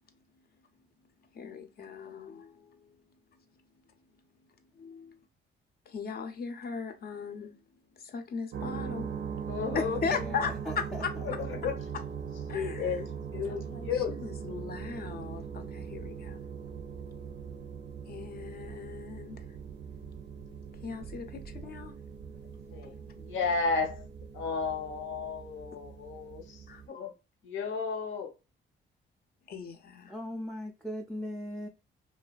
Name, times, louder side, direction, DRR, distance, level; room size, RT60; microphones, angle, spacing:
voice 1, 1.3-2.9 4.8-5.2 5.9-7.5 8.0-9.1 9.7-11.1 12.5-13.0 13.5-16.4 17.5-17.6 18.1-19.4 20.8-22.0 22.7-23.0 26.7-26.8 29.5-30.1, left 5 dB, 50° left, 0.6 m, -38 dB
sound 1, 8.5-26.9, right 7 dB, 65° right, 0.5 m, -41 dB
voice 2, 9.5-10.0 11.2-11.7 12.5-14.1 22.7-24.1 24.3-27.1 27.4-28.3, left 5 dB, 85° left, 0.8 m, -33 dB
voice 3, 10.1-11.0 30.1-31.7, equal, ahead, 0.5 m, -38 dB
2.6 x 2.3 x 2.3 m
cardioid pair, 90°, 20 cm